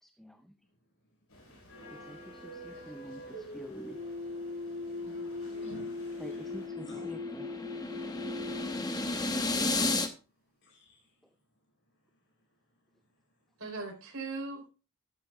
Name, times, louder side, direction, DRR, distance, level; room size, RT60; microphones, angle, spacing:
voice 1, 0.0-0.5 2.1-4.0 5.6-5.7 6.2-7.5, equal, ahead, 7 dB, 0.5 m, -47 dB
voice 2, 0.8-2.2 4.7-6.4 6.8-7.1 9.0-11.4 11.8-13.6, right 1 dB, 55° left, 0 dB, 5.2 m, -59 dB
sound 1, 1.3-6.7, left 1 dB, 80° left, 4.8 m, -52 dB
sound 2, 2.4-9.7, left 3 dB, 40° right, 5.3 m, -40 dB
voice 3, 5.0-5.9 13.6-14.7, right 3 dB, 70° right, 2 dB, 3.8 m, -41 dB
sound 3, 5.8-10.1, left 2 dB, 20° left, 0.9 m, -33 dB
13.0 x 11.5 x 2.4 m, 0.32 s
head